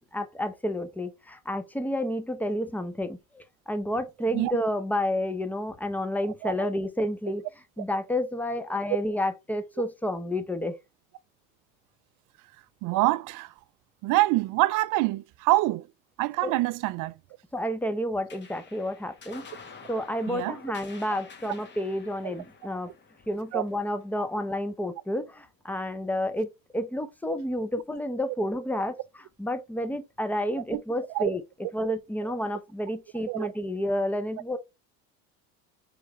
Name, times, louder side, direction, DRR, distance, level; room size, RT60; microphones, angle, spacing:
voice 1, 0.1-7.4 7.8-10.8 16.4-16.5 17.5-19.5 19.9-22.9 23.3-29.0 29.4-31.4 31.7-34.6, left 1 dB, 5° left, 0.7 m, -30 dB
voice 2, 12.8-13.5 14.0-15.9 16.2-17.1 20.3-20.6 22.2-22.3 23.5-23.6 30.7-30.8 31.1-31.3 31.8-31.9 32.2-32.3 33.3-33.5, right 18 dB, 55° right, 0.4 m, -26 dB
sound 1, 18.3-25.1, left 5 dB, 25° left, 1.1 m, -50 dB
4.9 x 3.2 x 3.0 m
supercardioid pair, 95°, 39 cm